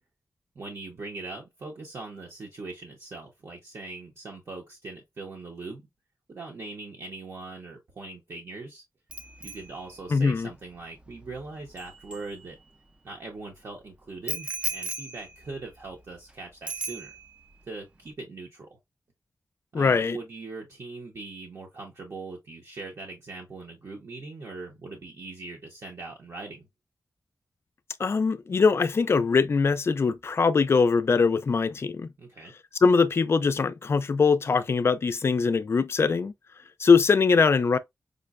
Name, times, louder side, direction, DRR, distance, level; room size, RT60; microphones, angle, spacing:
voice 1, 0.5-5.8 6.3-8.8 9.4-12.6 13.0-17.1 17.7-18.8 19.7-26.7 32.2-32.5, right 3 dB, 55° right, 0.8 m, -41 dB
Bicycle bell, 9.1-12.9 14.3-16.3 16.7-17.5 17.8-18.1, right 1 dB, 20° right, 0.4 m, -38 dB
voice 2, 10.1-10.5 19.7-20.2 28.0-32.1 32.8-36.3 36.8-37.8, left 5 dB, 45° left, 0.3 m, -22 dB
5.0 x 2.1 x 2.4 m
wide cardioid pair, 140°, 6 cm